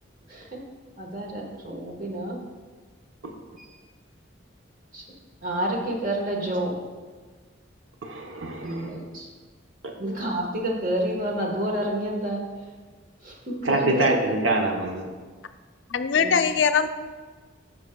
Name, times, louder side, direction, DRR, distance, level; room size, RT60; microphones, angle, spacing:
voice 1, 0.3-0.6 1.0-2.4 3.6-3.7 4.9-5.0 5.4-6.8 8.6-9.3 10.0-12.5 13.2-14.3 16.1-16.4, right 1 dB, 45° right, 0 dB, 1.4 m, -29 dB
voice 2, 8.0-8.9 13.6-15.1, right 2 dB, 85° right, 2 dB, 0.9 m, -25 dB
voice 3, 15.9-16.9, left 6 dB, 65° left, 9 dB, 0.5 m, -21 dB
12.5 x 6.2 x 2.3 m, 1.5 s
head